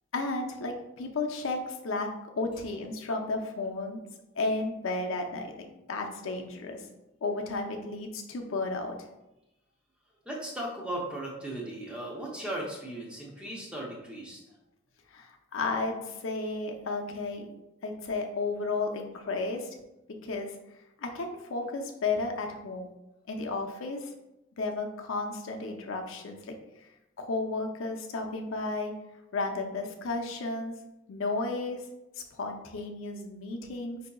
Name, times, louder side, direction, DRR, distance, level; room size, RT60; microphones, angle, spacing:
voice 1, 0.1-2.1 2.4-4.0 4.4-6.8 7.2-8.9 15.1-17.5 17.8-19.7 20.2-20.5 21.0-22.9 23.3-24.1 24.6-26.5 27.2-28.9 29.3-30.8 31.1-31.8 32.2-34.0, left 3 dB, 90° left, 3 dB, 0.5 m, -33 dB
voice 2, 10.3-14.4, right 1 dB, 5° right, -3 dB, 0.6 m, -37 dB
4.9 x 2.7 x 2.3 m, 0.93 s
head